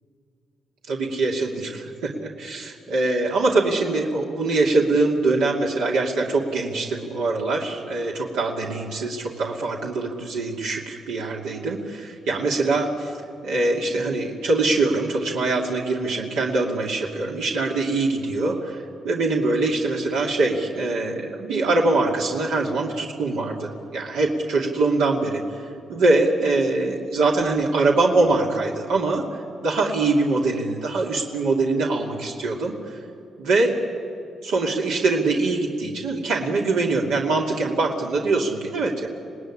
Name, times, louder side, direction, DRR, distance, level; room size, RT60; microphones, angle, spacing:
voice 1, 0.9-13.1 13.4-25.6 25.9-33.0 33.4-33.8 34.4-39.1, right 3 dB, 90° right, -2 dB, 2.6 m, -23 dB
26.5 x 19.0 x 10.0 m, 2.5 s
supercardioid pair, 65°, 0 cm